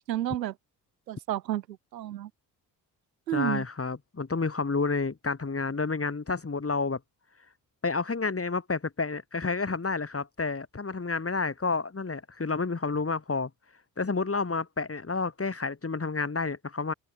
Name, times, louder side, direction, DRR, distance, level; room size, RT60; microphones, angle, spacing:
voice 1, 0.1-0.5 1.1-2.3 3.3-3.7, right 13 dB, 85° right, 2.2 m, -31 dB
voice 2, 3.3-7.0 7.8-13.5 14.0-16.9, left 4 dB, 25° left, 6.4 m, -30 dB
figure-of-eight pair, 40°, 49 cm